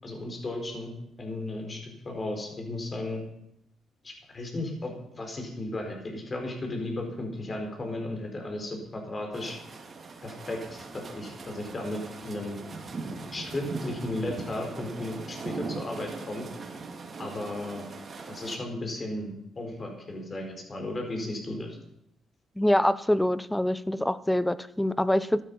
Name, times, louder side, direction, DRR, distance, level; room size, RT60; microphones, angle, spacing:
voice 1, 0.0-3.2 4.0-9.6 10.2-10.8 11.1-12.0 12.2-12.6 13.3-16.4 17.2-17.9 18.3-21.8, left 2 dB, 30° left, 2 dB, 4.7 m, -35 dB
sound 1, 9.3-18.6, right 4 dB, 45° right, 2.6 m, -40 dB
voice 2, 22.6-25.4, left 1 dB, 5° left, 17 dB, 0.7 m, -25 dB
14.0 x 12.0 x 5.5 m, 0.78 s
cardioid pair, 90°, 0 cm